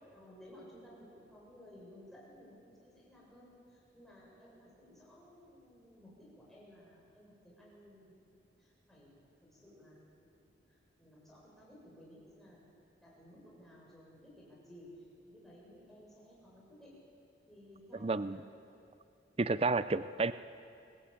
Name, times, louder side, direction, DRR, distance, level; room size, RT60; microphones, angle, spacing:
voice 1, 0.1-8.1 8.6-12.7 13.0-17.0 17.5-18.5, equal, ahead, -6 dB, 7.4 m, -57 dB
voice 2, 17.9-18.4 19.4-20.3, right 3 dB, 35° right, 14 dB, 0.5 m, -31 dB
25.5 x 20.0 x 8.8 m, 2.5 s
head